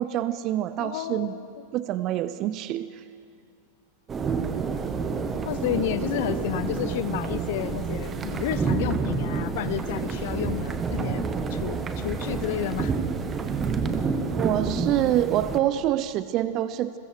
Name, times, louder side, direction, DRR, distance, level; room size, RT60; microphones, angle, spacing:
voice 1, 0.0-1.4 1.7-2.9 14.4-17.0, right 12 dB, 35° right, 15 dB, 0.6 m, -26 dB
voice 2, 0.8-1.5 5.4-12.9, left 12 dB, 50° left, 14 dB, 0.9 m, -31 dB
sound 1, 4.1-15.6, right 5 dB, 20° right, 1.4 m, -29 dB
30.0 x 22.0 x 4.7 m, 2.5 s
figure-of-eight pair, 90°, 0 cm